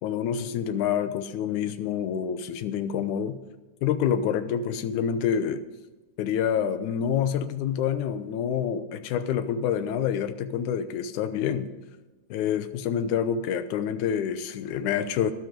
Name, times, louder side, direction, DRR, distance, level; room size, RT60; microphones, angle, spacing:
voice 1, 0.0-3.4 3.8-5.6 6.2-11.7 12.3-15.3, left 8 dB, 75° left, 11 dB, 2.2 m, -27 dB
13.0 x 12.0 x 5.2 m, 1.2 s
omnidirectional pair, 3.7 m